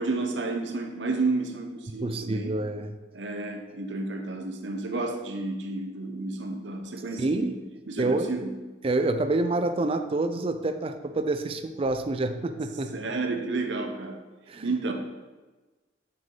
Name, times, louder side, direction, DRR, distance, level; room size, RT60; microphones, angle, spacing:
voice 1, 0.0-2.6 3.1-7.5 7.9-8.5 12.9-14.2 14.6-14.9, right 3 dB, 80° right, 4 dB, 0.8 m, -31 dB
voice 2, 2.0-2.9 7.2-7.6 8.0-8.3 8.8-12.9 14.5-14.7, right 2 dB, 30° right, 8 dB, 0.4 m, -27 dB
7.8 x 5.8 x 3.8 m, 1.2 s
head